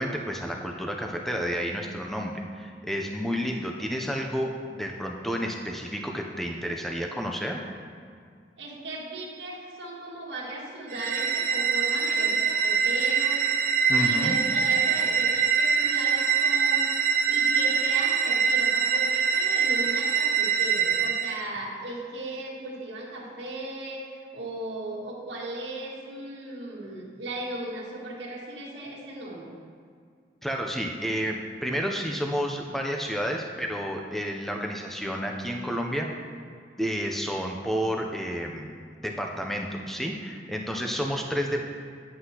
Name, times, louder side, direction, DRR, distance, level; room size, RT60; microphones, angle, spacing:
voice 1, 0.0-7.6 13.9-14.4 30.4-36.1 36.8-38.7 39.0-41.6, equal, ahead, 1 dB, 0.4 m, -30 dB
voice 2, 8.6-29.5, right 1 dB, 80° right, -5 dB, 1.6 m, -37 dB
sound 1, 10.9-21.4, right 6 dB, 50° right, 0.5 m, -24 dB
9.7 x 7.7 x 2.8 m, 2.1 s
head